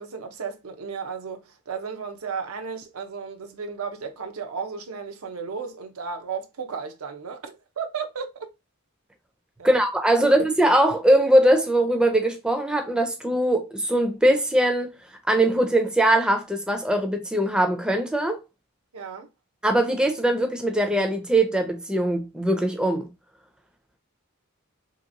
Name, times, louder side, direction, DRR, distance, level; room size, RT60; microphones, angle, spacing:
voice 1, 0.0-8.5 9.6-9.8 10.2-10.3 18.9-19.3, right 5 dB, 90° right, 0.6 m, -34 dB
voice 2, 9.6-14.9 15.3-18.4 19.6-23.1, right 1 dB, 5° right, 0.4 m, -21 dB
3.0 x 2.9 x 2.5 m
head